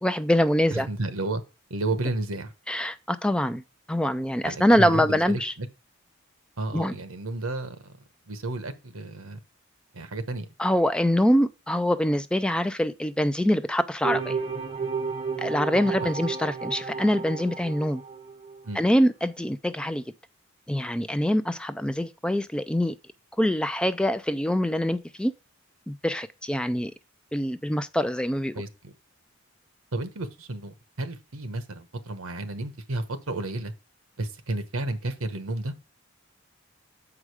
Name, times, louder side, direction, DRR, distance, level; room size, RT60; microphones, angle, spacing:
voice 1, 0.0-0.9 2.7-3.6 3.9-5.5 6.7-6.9 10.6-14.4 15.4-18.0 18.7-20.0 20.7-22.9 23.4-25.3 25.9-26.9 27.3-28.6, equal, 5° left, 0.3 m, -24 dB
voice 2, 0.7-1.4 1.7-2.5 4.4-5.7 6.6-7.8 8.3-9.4 9.9-10.5 16.0-16.1 18.6-18.8 28.5-28.9 29.9-33.7 34.2-35.7, right 2 dB, 85° right, 1.1 m, -32 dB
sound 1, 14.0-18.6, right 5 dB, 25° right, 0.7 m, -32 dB
7.3 x 4.9 x 4.8 m
head